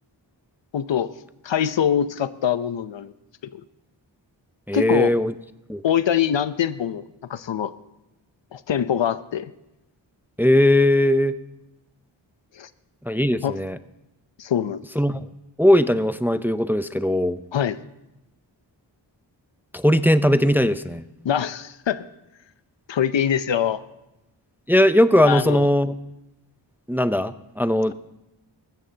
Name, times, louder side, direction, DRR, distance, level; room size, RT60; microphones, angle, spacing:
voice 1, 0.7-1.1 1.4-3.1 3.5-3.6 4.7-5.1 5.8-7.0 7.3-7.7 8.5-9.5 12.6-12.7 13.4-13.6 14.4-14.8 17.5-17.8 21.2-22.0 22.9-23.8 25.2-25.7, left 9 dB, 70° left, 14 dB, 0.7 m, -23 dB
voice 2, 4.7-5.3 5.7-5.8 10.4-11.3 13.1-13.8 15.0-15.3 15.6-17.4 19.7-21.0 24.7-26.0 26.9-27.9, left 1 dB, 5° right, 12 dB, 0.5 m, -19 dB
19.5 x 15.5 x 2.8 m, 0.92 s
cardioid pair, 50°, 45 cm